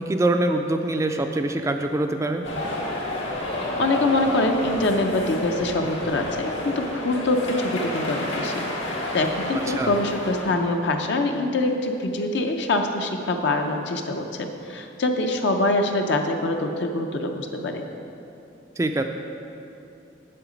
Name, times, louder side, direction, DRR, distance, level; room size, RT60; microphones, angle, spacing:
voice 1, 0.0-2.4 9.5-9.9 18.8-19.0, right 2 dB, 15° right, 5 dB, 0.3 m, -24 dB
sound 1, 2.4-10.6, left 1 dB, 85° left, 1.8 m, -30 dB
voice 2, 3.8-8.7 9.1-17.8, left 2 dB, 60° left, 4 dB, 0.6 m, -24 dB
7.7 x 7.5 x 5.1 m, 2.8 s
head